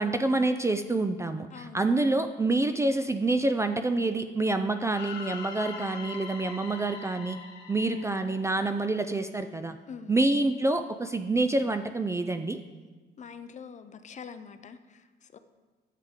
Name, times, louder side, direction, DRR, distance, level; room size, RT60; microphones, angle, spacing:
voice 1, 0.0-7.4 7.7-9.8 10.1-12.6, right 2 dB, 15° right, 8 dB, 0.3 m, -27 dB
voice 2, 1.5-1.8 9.9-10.2 13.2-15.4, left 6 dB, 40° left, 10 dB, 0.5 m, -45 dB
sound 1, 4.9-9.0, left 5 dB, 65° left, 1.2 m, -42 dB
10.5 x 7.5 x 3.6 m, 1.3 s
cardioid pair, 130°, 19 cm